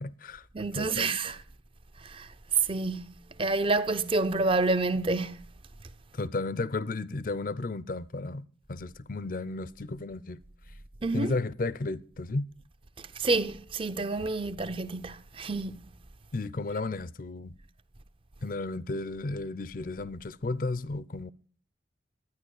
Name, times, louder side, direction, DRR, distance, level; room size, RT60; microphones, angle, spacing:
voice 1, 0.0-0.5 0.7-1.1 6.1-10.4 11.1-12.5 16.3-17.5 18.4-21.3, left 3 dB, 45° left, 0.5 m, -33 dB
voice 2, 0.5-1.4 2.0-2.3 2.7-3.1 3.4-5.5 11.0-11.3 13.0-15.8, right 3 dB, 30° right, 0.5 m, -29 dB
12.5 x 9.6 x 6.6 m
head